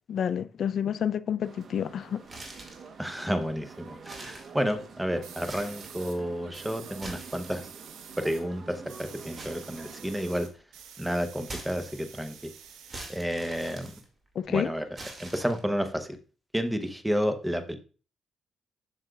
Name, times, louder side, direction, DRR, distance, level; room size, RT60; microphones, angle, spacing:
voice 1, 0.1-2.2 14.4-14.7, left 8 dB, 60° left, 0.3 m, -29 dB
sound 1, 1.4-10.5, right 5 dB, 50° right, 1.0 m, -47 dB
sound 2, 2.3-2.9 3.4-3.5 4.0-5.0 5.3-6.0 6.8-7.9 9.4-10.4 11.4-12.3 12.9-14.5 14.9-15.9, right 2 dB, 30° right, 2.0 m, -44 dB
voice 2, 3.0-7.7 8.2-10.5 11.0-12.3 13.1-13.9 14.5-14.9 15.2-16.2 16.5-17.8, equal, 5° right, 0.8 m, -31 dB
sound 3, 5.2-6.2 6.5-8.4 8.7-13.2 13.5-14.5, right 7 dB, 90° right, 1.0 m, -48 dB
7.6 x 6.3 x 2.3 m
cardioid pair, 90°, 0 cm